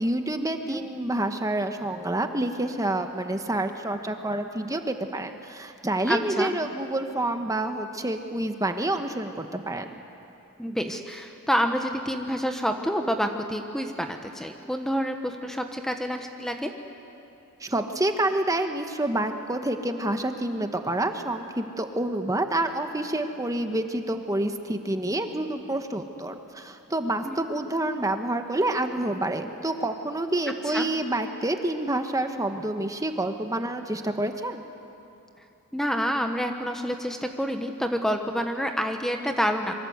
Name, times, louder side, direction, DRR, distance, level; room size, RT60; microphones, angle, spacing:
voice 1, 0.0-9.9 17.6-34.6, right 1 dB, 15° right, 6 dB, 1.2 m, -28 dB
voice 2, 6.1-6.5 10.6-16.7 27.2-27.4 30.7-30.8 35.7-39.7, equal, ahead, 5 dB, 1.1 m, -28 dB
26.5 x 24.0 x 8.0 m, 2.9 s
head